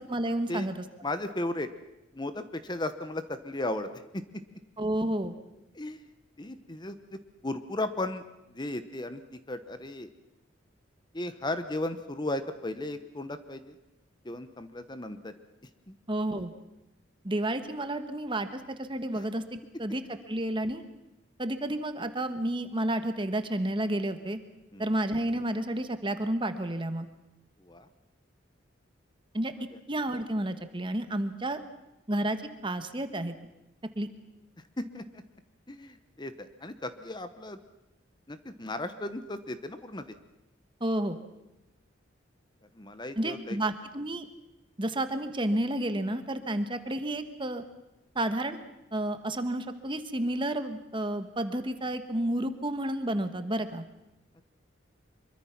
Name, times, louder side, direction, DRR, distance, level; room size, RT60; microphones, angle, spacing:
voice 1, 0.1-0.8 4.8-5.3 16.1-16.5 17.2-20.8 21.4-24.4 24.8-27.1 29.3-29.5 29.9-31.6 32.1-32.4 32.6-33.3 33.9-34.1 40.8-41.2 43.2-44.3 44.8-47.6 48.1-48.6 48.9-53.8, right 1 dB, 25° right, 9 dB, 1.3 m, -31 dB
voice 2, 1.0-1.7 2.1-4.4 5.7-6.1 6.4-10.1 11.1-13.7 14.2-15.3 15.9-16.0 19.1-19.2 24.7-24.9 27.6-27.9 29.6-29.8 34.8-35.2 35.7-37.6 38.3-40.2 42.7-43.6 46.5-46.6, left 1 dB, 20° left, 10 dB, 1.0 m, -36 dB
24.5 x 23.0 x 5.9 m, 0.91 s
head